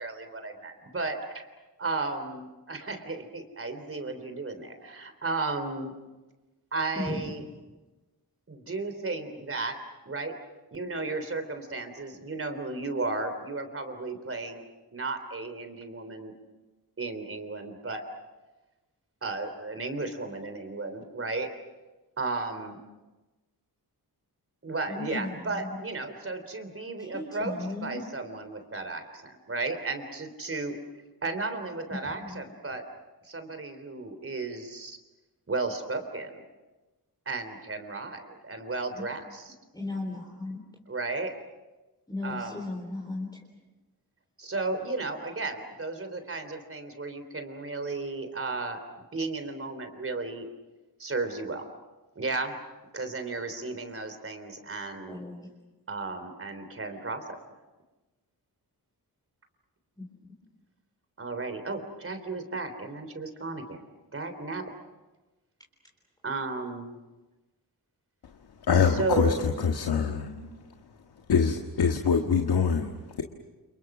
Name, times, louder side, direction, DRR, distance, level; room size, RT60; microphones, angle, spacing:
voice 1, 0.0-1.5 1.8-5.9 6.7-7.4 8.5-9.8 10.0-10.3 10.7-14.6 14.9-16.3 17.0-18.0 19.2-21.5 22.2-22.8 24.6-27.5 27.8-30.8 31.2-32.8 33.2-35.0 35.5-36.3 37.2-39.5 40.9-41.3 42.2-42.6 44.4-48.8 49.1-50.5 51.0-51.6 52.1-52.5 52.9-55.2 55.9-57.2 61.2-63.8 64.1-64.6 66.2-67.0 69.0-69.4, right 3 dB, 35° right, 8 dB, 3.5 m, -34 dB
voice 2, 24.9-25.8 27.0-28.0 31.9-32.4 38.9-39.0 39.7-40.6 42.1-43.4 55.1-55.5 60.0-60.3 69.2-69.7 70.2-70.7, left 2 dB, 10° left, 0 dB, 3.8 m, -37 dB
voice 3, 68.7-70.3 71.3-73.2, left 6 dB, 85° left, 4 dB, 1.8 m, -24 dB
29.5 x 29.5 x 6.1 m, 1.1 s
wide cardioid pair, 150°, 38 cm